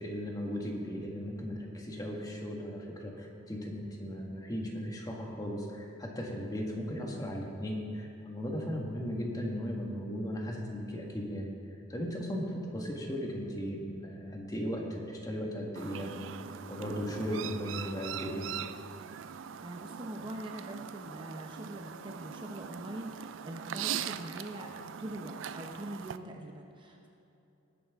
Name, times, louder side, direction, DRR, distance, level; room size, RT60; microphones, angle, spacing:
voice 1, 0.0-11.5 11.9-16.3 16.7-18.5, equal, 20° left, 0 dB, 1.5 m, -37 dB
Chirp tweet, 15.8-26.2, right 9 dB, 70° right, 0.4 m, -41 dB
voice 2, 19.6-24.7 25.0-27.1, right 1 dB, 25° right, 1 dB, 0.8 m, -43 dB
18.0 x 9.5 x 3.6 m, 2.9 s
head